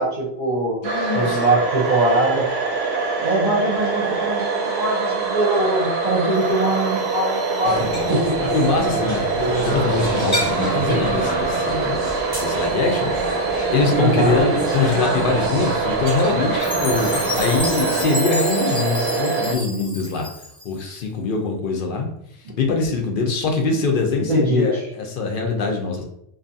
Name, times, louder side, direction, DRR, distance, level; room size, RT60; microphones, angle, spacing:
voice 1, 0.0-0.8 1.1-2.5 3.2-8.3 9.6-9.8 10.7-11.0 14.0-14.4 24.3-24.6, right 1 dB, 50° right, -5 dB, 0.7 m, -22 dB
voice 2, 0.8-1.5 7.6-9.3 9.6-12.0 12.3-13.1 13.7-20.3 20.6-22.1 22.6-26.0, left 4 dB, 65° left, 2 dB, 0.7 m, -23 dB
sound 1, 0.8-19.5, right 4 dB, 85° right, 0.8 m, -24 dB
sound 2, 7.6-18.1, equal, 10° right, 1.0 m, -28 dB
Chime, 16.6-20.8, left 1 dB, 10° left, 0.4 m, -30 dB
2.6 x 2.4 x 2.6 m, 0.74 s
omnidirectional pair, 1.0 m